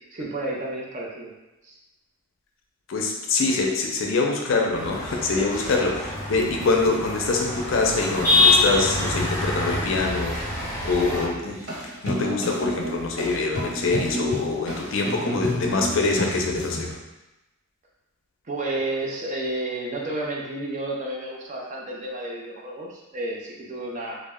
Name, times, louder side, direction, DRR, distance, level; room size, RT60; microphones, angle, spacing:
voice 1, 0.1-1.3 1.6-1.8 18.4-24.2, right 2 dB, 35° right, -2 dB, 0.4 m, -31 dB
voice 2, 2.9-10.4 10.8-11.6 12.0-16.9, left 3 dB, 65° left, 1 dB, 0.4 m, -24 dB
sound 1, 4.7-11.3, left 2 dB, 15° left, 0.9 m, -25 dB
sound 2, 11.5-16.9, equal, 60° right, 1.4 m, -31 dB
2.1 x 2.1 x 3.4 m, 1.0 s
head